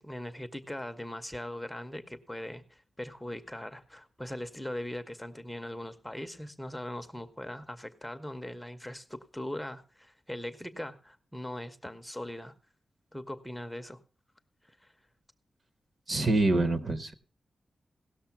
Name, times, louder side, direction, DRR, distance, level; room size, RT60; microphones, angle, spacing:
voice 1, 0.0-12.5 13.1-14.0 14.6-14.9, left 1 dB, 5° left, 8 dB, 0.5 m, -40 dB
voice 2, 16.1-17.1, right 2 dB, 40° right, 11 dB, 0.8 m, -26 dB
17.0 x 6.4 x 5.7 m, 0.37 s
wide cardioid pair, 170°, 0 cm